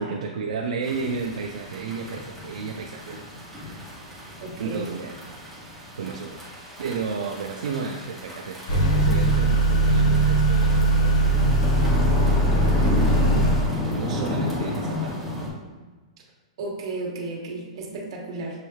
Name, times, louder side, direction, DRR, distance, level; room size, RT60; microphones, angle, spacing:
voice 1, 0.0-3.3 3.5-4.0 4.6-5.2 5.7-6.5 6.8-13.5 13.9-15.2, right 5 dB, 70° right, 0 dB, 0.5 m, -33 dB
sound 1, 0.8-15.5, left 1 dB, ahead, 0.7 m, -32 dB
voice 2, 4.4-4.8 15.7-15.8 16.6-18.7, right 2 dB, 45° right, 0 dB, 1.0 m, -34 dB
Motor vehicle (road) / Accelerating revving vroom, 8.7-13.7, right 1 dB, 55° left, 0.9 m, -20 dB
6.5 x 3.1 x 2.3 m, 1.3 s
hypercardioid pair, 180°, 4 cm